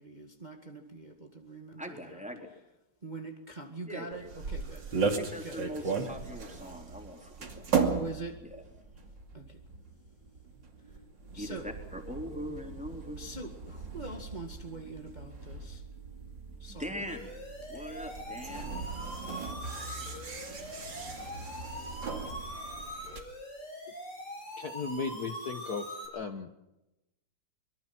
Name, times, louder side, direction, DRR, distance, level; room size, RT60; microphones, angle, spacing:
voice 1, 0.0-2.2 3.0-5.0 5.4-5.6 5.8-5.9 7.9-8.4 9.3-9.6 11.3-11.7 13.2-15.8 16.6-16.9, right 2 dB, 20° right, 4 dB, 2.0 m, -43 dB
voice 2, 1.8-2.5 3.9-4.3 5.2-7.7 8.4-8.6 11.4-13.3 16.7-17.3 17.7-18.8, equal, 5° right, 2 dB, 3.7 m, -41 dB
sound 1, 4.1-23.2, right 5 dB, 55° right, 3.1 m, -37 dB
sound 2, 17.1-26.1, equal, 75° left, 8.5 m, -43 dB
voice 3, 24.6-26.5, left 4 dB, 50° left, 7 dB, 1.6 m, -36 dB
24.5 x 23.0 x 6.0 m, 0.94 s
omnidirectional pair, 2.4 m